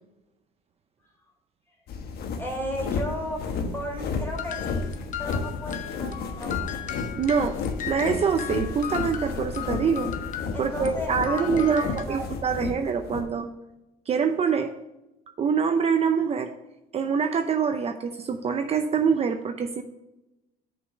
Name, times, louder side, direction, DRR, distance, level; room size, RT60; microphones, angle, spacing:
sound 1, 1.9-13.2, left 4 dB, 70° left, 1.1 m, -32 dB
voice 1, 2.4-3.4 3.7-4.8 5.2-6.9 10.5-12.2, left 1 dB, 15° left, -1 dB, 3.2 m, -35 dB
sound 2, 4.4-11.0 11.2-12.0, left 11 dB, 50° left, 0.8 m, -37 dB
voice 2, 7.2-7.6 7.9-10.1 10.6-13.5 14.1-14.7 15.4-16.5 16.9-19.8, right 6 dB, 35° right, 6 dB, 0.6 m, -25 dB
6.9 x 5.3 x 6.4 m, 0.96 s
cardioid pair, 110°, 17 cm